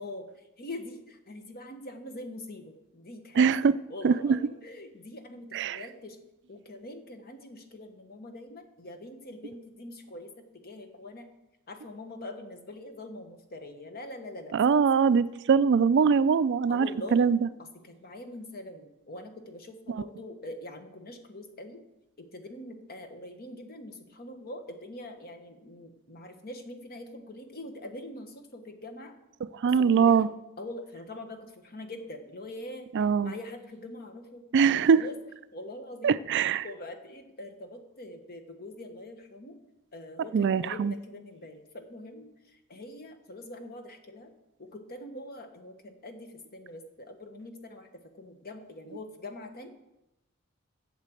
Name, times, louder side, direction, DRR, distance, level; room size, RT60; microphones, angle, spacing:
voice 1, 0.0-6.2 6.5-11.3 11.7-14.8 16.7-17.3 17.8-21.8 22.2-29.1 29.6-30.3 30.6-34.5 34.9-35.2 35.5-36.1 36.6-39.6 39.9-44.3 44.6-47.9 48.1-49.7, left 1 dB, 45° left, 6 dB, 1.2 m, -43 dB
voice 2, 4.0-4.4 5.5-5.8 14.5-17.4 29.6-30.3 32.9-33.3 34.5-35.0 36.0-36.6 40.3-40.9, right 6 dB, 55° right, 16 dB, 0.4 m, -22 dB
8.4 x 7.4 x 7.6 m, 0.93 s
head